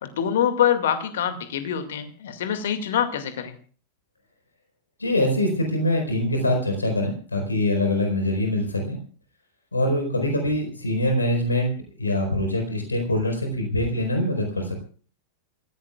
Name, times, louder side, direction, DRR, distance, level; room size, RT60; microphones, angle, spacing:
voice 1, 0.0-3.6, left 9 dB, 60° left, 9 dB, 2.2 m, -25 dB
voice 2, 5.0-9.0 9.7-11.7 12.0-14.9, left 1 dB, 80° left, 4 dB, 4.5 m, -24 dB
27.5 x 16.0 x 2.4 m, 0.42 s
figure-of-eight pair, 90°, 0 cm